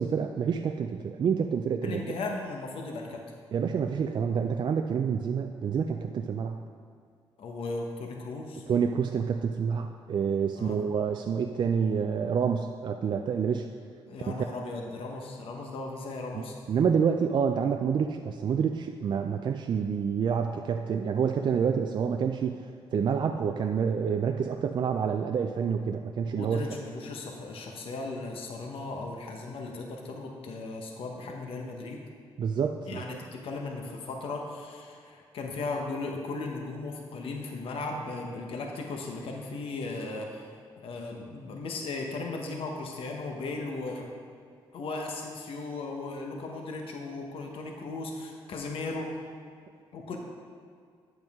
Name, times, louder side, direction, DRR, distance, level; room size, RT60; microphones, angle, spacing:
voice 1, 0.0-2.0 3.5-6.6 8.7-13.7 14.3-14.4 16.3-22.6 22.9-26.7 32.4-33.0, right 6 dB, 50° right, 5 dB, 0.4 m, -28 dB
voice 2, 1.8-3.2 7.4-8.7 10.5-10.9 14.1-16.6 26.3-32.0 32.9-44.1 44.7-49.1 49.9-50.2, left 3 dB, 70° left, 1 dB, 1.1 m, -37 dB
8.9 x 7.9 x 3.6 m, 2.2 s
cardioid pair, 85°, 10 cm